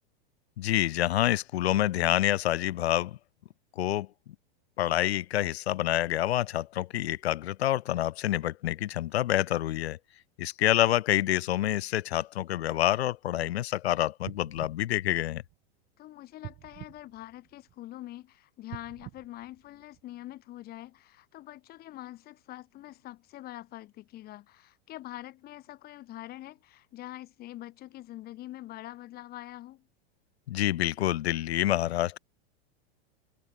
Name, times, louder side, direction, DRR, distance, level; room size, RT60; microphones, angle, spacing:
voice 1, 0.6-3.2 3.8-4.1 4.8-10.0 10.4-15.4 30.5-32.2, left 13 dB, 85° left, 1.4 m, -27 dB
sound 1, 14.2-15.9 16.4-18.0 18.6-20.3 20.9-21.0, right 19 dB, 35° right, 4.9 m, -48 dB
voice 2, 16.0-29.8, left 15 dB, 30° left, 7.8 m, -44 dB
supercardioid pair, 160°, 31 cm